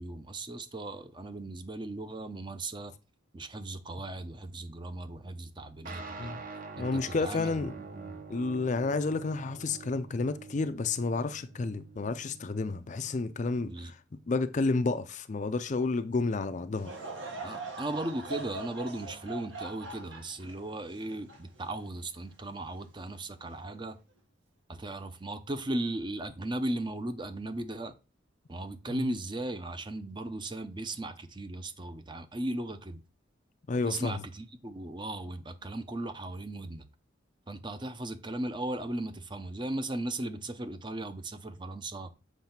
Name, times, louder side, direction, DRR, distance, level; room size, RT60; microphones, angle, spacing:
voice 1, 0.0-2.9 3.3-6.4 6.8-8.3 13.6-13.9 17.4-24.0 24.7-27.9 28.5-33.0 33.8-36.8 37.5-42.1, right 1 dB, 25° right, 0.6 m, -37 dB
sound 1, 5.9-13.7, right 4 dB, 45° right, 1.0 m, -46 dB
voice 2, 6.8-7.7 8.3-14.0 14.3-16.9 28.9-29.0 33.7-34.2, left 3 dB, 40° left, 0.4 m, -30 dB
Laughter / Crowd, 16.8-22.2 22.8-22.9 23.7-23.9, right 3 dB, 75° right, 2.0 m, -42 dB
7.3 x 3.2 x 5.8 m
head